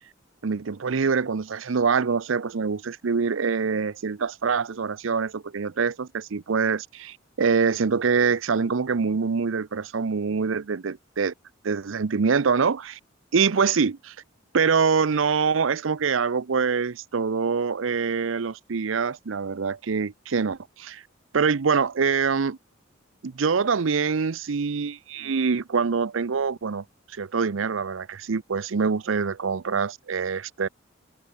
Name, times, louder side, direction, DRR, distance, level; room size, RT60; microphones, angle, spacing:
voice 1, 0.4-11.3 11.6-13.0 13.3-14.1 14.5-21.0 21.3-22.6 23.2-26.8 27.1-30.7, right 5 dB, 80° right, 0.6 m, -25 dB
head